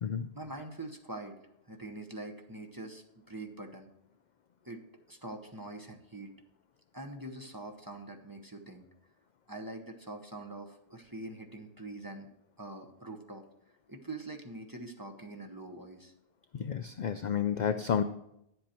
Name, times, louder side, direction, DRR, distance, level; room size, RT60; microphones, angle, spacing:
voice 1, 0.3-1.4 1.7-3.9 4.6-4.8 5.1-6.3 6.9-8.8 9.5-12.3 12.6-13.4 13.9-16.1, right 2 dB, 20° right, 3 dB, 0.8 m, -44 dB
voice 2, 16.5-18.0, left 8 dB, 60° left, 9 dB, 0.5 m, -30 dB
10.5 x 7.7 x 4.4 m, 0.80 s
omnidirectional pair, 1.2 m